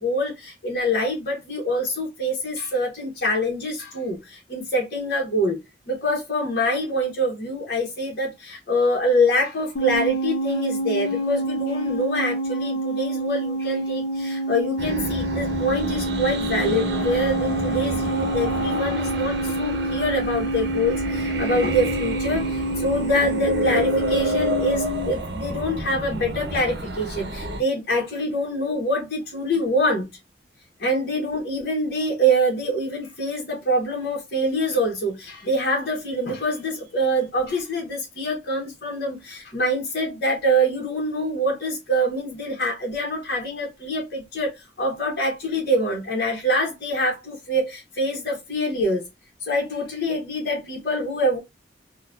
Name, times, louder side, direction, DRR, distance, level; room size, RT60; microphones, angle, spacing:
voice 1, 0.0-5.6 5.9-30.1 30.8-49.0 49.4-51.4, equal, 55° left, 1.3 m, -25 dB
sound 1, 9.8-25.1, right 1 dB, 75° left, 0.8 m, -27 dB
sound 2, 14.8-27.6, right 1 dB, 70° right, 0.7 m, -29 dB
3.9 x 2.4 x 2.4 m
head